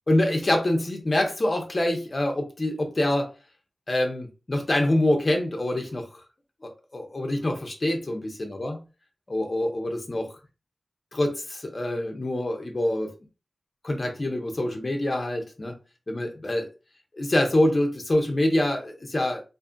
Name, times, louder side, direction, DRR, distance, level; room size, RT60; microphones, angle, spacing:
voice 1, 0.1-3.3 3.9-6.1 6.6-8.8 9.3-10.3 11.1-13.1 13.8-15.8 16.1-16.7 17.1-19.4, left 1 dB, 45° left, 0.7 m, -25 dB
2.6 x 2.4 x 2.5 m
wide cardioid pair, 65°, 0 cm